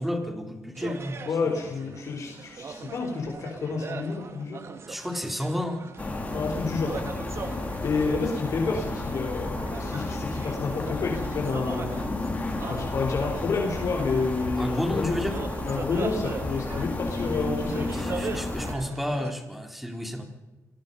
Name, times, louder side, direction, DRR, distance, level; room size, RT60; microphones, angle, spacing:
voice 1, 0.0-1.6 4.9-5.9 14.6-15.4 17.9-20.2, equal, ahead, 4 dB, 3.8 m, -31 dB
sound 1, 0.7-19.3, right 5 dB, 50° right, 2.4 m, -41 dB
voice 2, 1.3-4.6 6.3-12.0 12.7-15.2 15.6-18.1, left 4 dB, 60° left, 2 dB, 4.3 m, -30 dB
sound 2, 6.0-18.7, left 2 dB, 25° left, 4.1 m, -32 dB
27.5 x 20.0 x 5.6 m, 1.1 s
cardioid pair, 105°, 6 cm